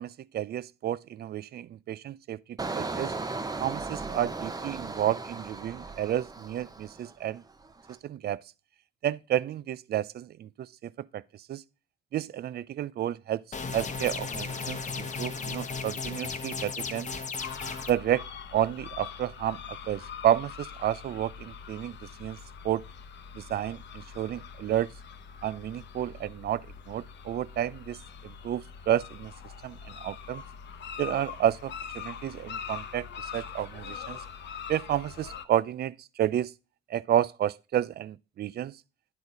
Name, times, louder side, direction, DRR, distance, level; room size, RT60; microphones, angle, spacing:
voice 1, 0.0-3.1 3.6-7.4 8.0-8.4 9.0-10.5 10.8-11.2 11.5-11.6 12.1-13.4 13.7-17.1 17.9-18.2 18.5-19.6 19.9-22.4 22.6-22.8 23.3-24.9 25.4-29.3 29.6-30.4 31.0-33.1 33.3-34.2 34.7-36.5 36.9-38.8, right 11 dB, 55° right, 0.5 m, -30 dB
Engine, 2.6-7.2 7.6-8.0, right 3 dB, 20° right, 0.7 m, -36 dB
sound 1, 13.5-17.9, left 4 dB, 35° left, 0.9 m, -35 dB
sound 2, 17.4-35.5, left 7 dB, 65° left, 0.8 m, -43 dB
10.5 x 4.1 x 4.6 m
cardioid pair, 90°, 20 cm